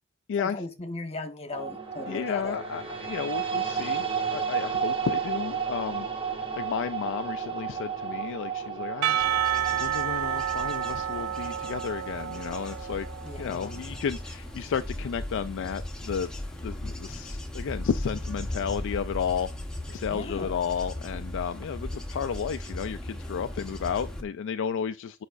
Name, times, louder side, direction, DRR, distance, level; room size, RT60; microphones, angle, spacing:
voice 1, 0.4-2.6 13.2-13.8 20.1-20.5, left 2 dB, 30° left, 1.1 m, -37 dB
sound 1, 1.5-13.7, right 6 dB, 25° right, 1.0 m, -33 dB
voice 2, 2.1-6.1 6.3-9.2 9.8-13.1 13.4-16.3 16.6-19.5 19.9-25.2, left 7 dB, 60° left, 0.3 m, -32 dB
Percussion / Church bell, 9.0-13.6, right 10 dB, 75° right, 0.3 m, -30 dB
Bird / Insect / Wind, 9.2-24.2, left 1 dB, 5° left, 1.0 m, -37 dB
8.1 x 4.9 x 2.5 m
head